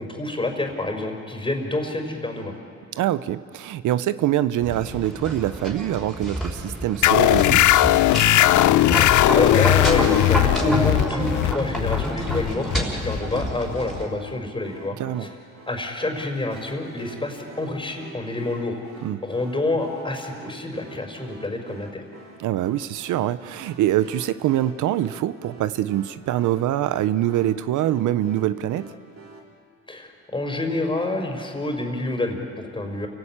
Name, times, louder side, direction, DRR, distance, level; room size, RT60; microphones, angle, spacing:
voice 1, 0.0-2.5 8.9-15.3 15.7-18.8 19.2-22.0 29.9-33.1, left 2 dB, 15° left, 4 dB, 4.5 m, -27 dB
voice 2, 3.0-7.7 15.0-15.3 19.0-19.2 22.4-28.9, right 13 dB, 80° right, 14 dB, 0.7 m, -24 dB
sound 1, 4.6-14.1, equal, ahead, 5.7 m, -29 dB
sound 2, 7.0-14.2, left 15 dB, 75° left, 0.6 m, -19 dB
sound 3, 14.6-29.4, right 3 dB, 60° right, 4.3 m, -46 dB
29.0 x 17.0 x 8.7 m, 2.3 s
cardioid pair, 90°, 30 cm